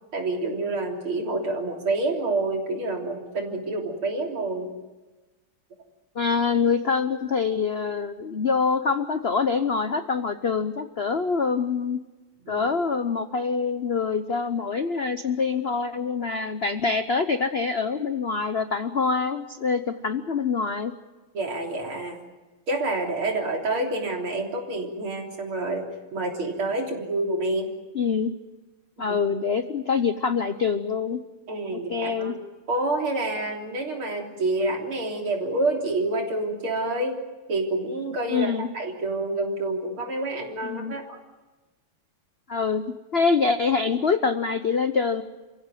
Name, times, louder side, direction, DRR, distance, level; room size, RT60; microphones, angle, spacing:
voice 1, 0.1-4.7 12.4-12.7 21.3-22.2 22.7-27.7 29.1-29.2 31.5-32.4 32.7-37.2 37.5-41.2, right 2 dB, 70° right, 2 dB, 4.2 m, -28 dB
voice 2, 6.1-12.0 12.5-20.9 27.9-28.3 29.0-31.2 31.7-32.3 38.3-38.7 40.6-41.0 42.5-42.8 43.1-45.2, left 5 dB, 60° left, 10 dB, 0.6 m, -25 dB
28.5 x 16.0 x 9.2 m, 1.2 s
omnidirectional pair, 2.4 m